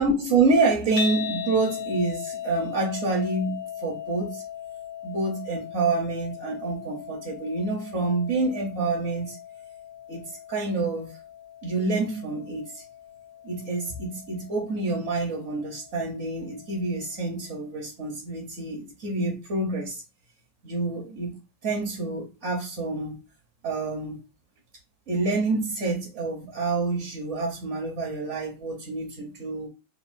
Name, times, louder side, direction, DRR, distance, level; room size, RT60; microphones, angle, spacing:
voice 1, 0.0-4.4 5.0-9.4 10.1-11.1 11.6-12.8 13.4-20.0 20.6-21.3 21.6-23.2 23.6-24.2 25.1-29.7, right 3 dB, 50° right, 0.9 m, -27 dB
sound 1, 1.0-17.2, left 9 dB, 80° left, 0.8 m, -39 dB
6.7 x 2.4 x 2.6 m
omnidirectional pair, 2.4 m